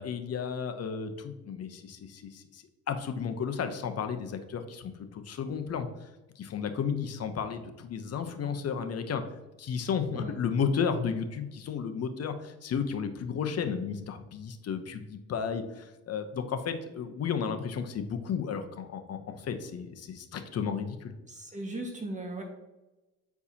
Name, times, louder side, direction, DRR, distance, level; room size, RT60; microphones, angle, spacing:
voice 1, 0.0-6.1 6.4-9.2 9.6-21.1, left 6 dB, 55° left, 8 dB, 0.8 m, -33 dB
voice 2, 21.3-22.4, right 2 dB, 25° right, 1 dB, 1.5 m, -37 dB
8.1 x 4.6 x 2.8 m, 1.0 s
cardioid pair, 90°, 30 cm